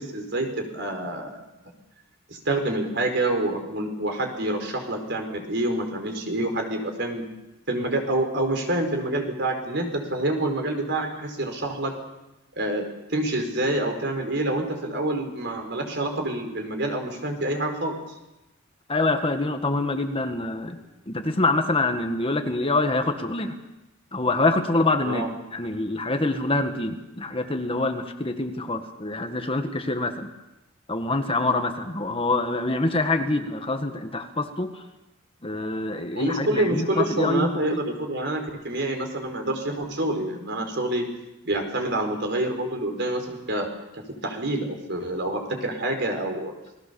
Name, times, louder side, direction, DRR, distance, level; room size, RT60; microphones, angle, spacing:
voice 1, 0.0-1.4 2.3-7.2 7.7-11.9 12.6-18.0 25.0-25.3 36.1-41.0 41.4-43.7 43.9-46.5, right 1 dB, 60° right, 4 dB, 4.7 m, -27 dB
voice 2, 18.9-20.8 21.1-23.6 24.1-25.3 25.5-30.3 30.9-34.8 35.4-37.8, left 2 dB, 30° left, 6 dB, 1.7 m, -25 dB
28.5 x 19.5 x 7.0 m, 0.97 s
head